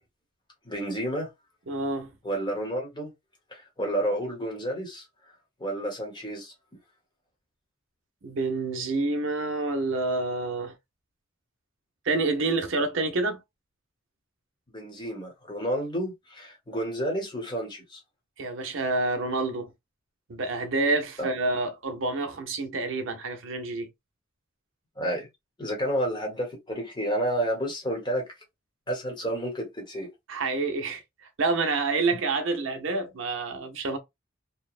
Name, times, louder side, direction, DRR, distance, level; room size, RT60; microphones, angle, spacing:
voice 1, 0.6-1.3 2.2-3.1 3.5-5.0 5.6-6.5 14.7-18.0 21.2-21.3 25.0-25.3 25.6-28.3 28.9-30.1, right 1 dB, 20° left, 1.0 m, -30 dB
voice 2, 1.7-2.1 8.2-10.7 12.0-13.4 18.4-19.7 20.3-23.9 30.3-31.0 31.4-34.0, right 3 dB, 65° right, 0.7 m, -28 dB
3.0 x 2.0 x 2.4 m
head